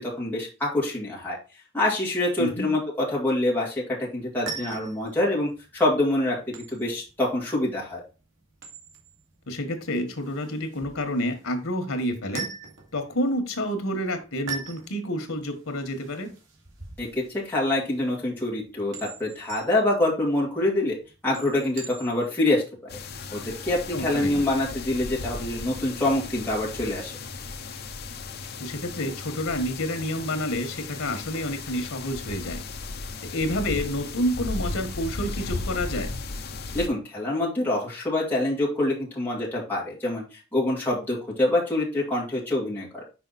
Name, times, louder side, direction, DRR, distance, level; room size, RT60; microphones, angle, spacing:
voice 1, 0.0-1.4 1.7-2.8 3.1-8.0 17.0-17.1 17.4-21.0 21.2-22.6 23.3-27.1 36.7-43.0, left 1 dB, 10° left, -6 dB, 2.1 m, -26 dB
voice 2, 2.4-2.7 9.5-12.5 12.9-16.3 23.9-24.5 28.6-32.6 33.2-36.1, equal, 85° left, 8 dB, 1.4 m, -29 dB
sound 1, 4.2-22.4, right 5 dB, 65° right, 2.0 m, -43 dB
sound 2, 22.9-36.9, left 3 dB, 50° left, 0.7 m, -36 dB
5.7 x 4.8 x 4.1 m, 0.32 s
head